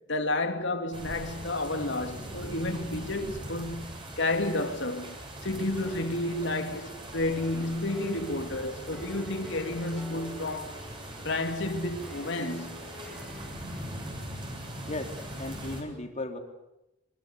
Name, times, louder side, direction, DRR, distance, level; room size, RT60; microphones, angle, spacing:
voice 1, 0.1-5.2 5.4-10.8 11.2-12.9, left 2 dB, 65° left, 2.8 m, -31 dB
sound 1, 0.9-15.8, right 1 dB, 25° right, 7.9 m, -41 dB
sound 2, 5.8-14.1, left 2 dB, ahead, 6.0 m, -48 dB
voice 2, 14.9-16.4, left 2 dB, 35° left, 3.8 m, -36 dB
27.5 x 23.0 x 8.2 m
head